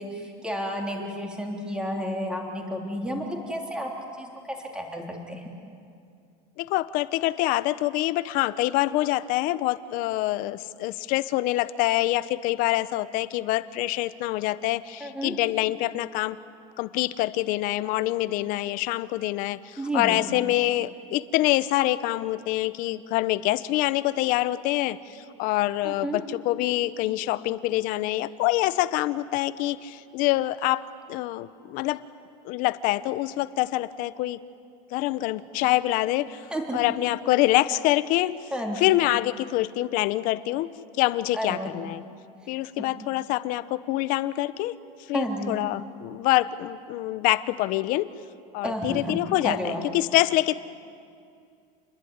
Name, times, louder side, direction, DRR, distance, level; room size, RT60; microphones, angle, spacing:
voice 1, 0.0-3.9 4.2-4.3 4.7-5.4 15.0-15.3 19.8-20.2 25.8-26.2 36.5-36.8 38.5-39.0 41.3-41.7 45.1-45.5 48.6-49.8, equal, 5° right, 1 dB, 3.4 m, -31 dB
voice 2, 6.6-16.4 16.8-32.0 32.4-34.4 34.9-36.5 36.7-38.5 38.8-40.7 41.0-42.0 42.5-44.7 45.1-48.1 48.5-50.5, left 16 dB, 45° left, 15 dB, 0.9 m, -25 dB
29.0 x 21.5 x 9.7 m, 2.4 s
cardioid pair, 165°, 19 cm